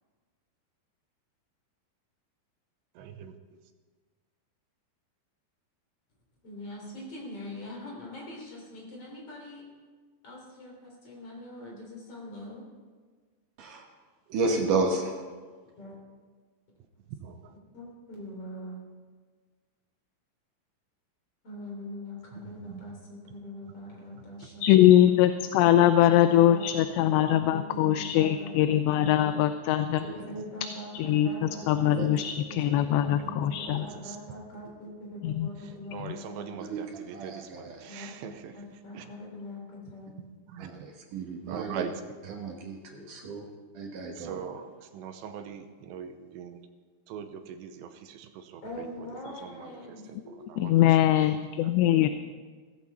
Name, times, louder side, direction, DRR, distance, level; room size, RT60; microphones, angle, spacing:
voice 1, 3.0-3.4 14.3-14.4 17.1-17.6 22.7-22.8 35.9-38.5 38.9-39.0 40.5-40.7 41.5-42.4 44.2-46.6 47.1-48.9 49.3-49.8 50.1-51.3 51.6-51.9, right 8 dB, 85° right, 8 dB, 3.0 m, -41 dB
voice 2, 6.4-9.6 10.2-12.6 15.8-16.0 17.7-18.8 21.4-25.4 25.7-29.5 30.1-36.5 37.9-40.1 48.6-50.5 51.9-52.1, left 1 dB, 35° left, -1 dB, 4.0 m, -42 dB
voice 3, 14.3-15.2 30.0-30.1 31.9-32.1 36.7-37.9 40.6-41.8 42.3-43.5 43.7-44.6, right 3 dB, 60° right, 1 dB, 2.4 m, -32 dB
voice 4, 24.6-30.1 30.9-31.3 31.7-33.8 35.2-35.5 50.6-52.1, left 12 dB, 85° left, 10 dB, 2.7 m, -22 dB
16.0 x 14.5 x 4.3 m, 1.5 s
omnidirectional pair, 5.0 m